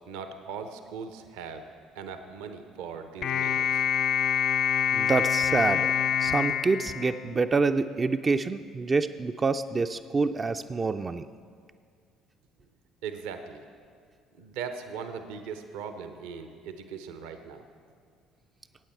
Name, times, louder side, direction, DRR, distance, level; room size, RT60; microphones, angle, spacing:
voice 1, 0.1-1.6 1.9-3.9 13.0-13.6 14.4-17.6, right 6 dB, 65° right, 8 dB, 0.7 m, -39 dB
sound 1, 3.2-7.7, left 8 dB, 50° left, 0.4 m, -26 dB
voice 2, 4.9-5.9 6.2-11.3, right 4 dB, 30° right, 7 dB, 0.4 m, -27 dB
16.5 x 8.8 x 4.4 m, 2.1 s
figure-of-eight pair, 55°, 0 cm